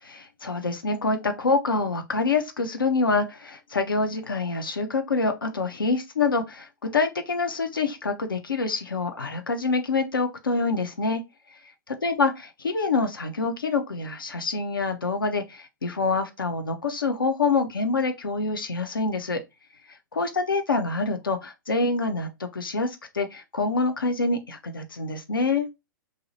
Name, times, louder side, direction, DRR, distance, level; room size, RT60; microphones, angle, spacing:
voice 1, 0.0-11.2 11.9-19.4 20.1-25.7, left 3 dB, 85° left, 0.6 m, -26 dB
2.5 x 2.0 x 2.7 m
hypercardioid pair, 115°, 11 cm